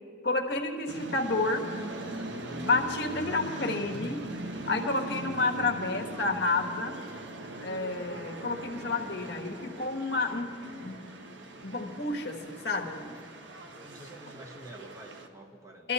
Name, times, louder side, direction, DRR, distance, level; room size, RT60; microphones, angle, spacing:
voice 1, 0.2-1.7 2.6-4.3 4.7-7.0 7.6-11.1 11.6-13.2 15.8-15.9, left 3 dB, 60° left, 4 dB, 1.4 m, -30 dB
sound 1, 0.9-15.3, right 2 dB, 75° right, 1.2 m, -41 dB
voice 2, 13.6-15.9, right 1 dB, 15° right, 2 dB, 1.0 m, -48 dB
22.0 x 13.5 x 4.2 m, 2.5 s
head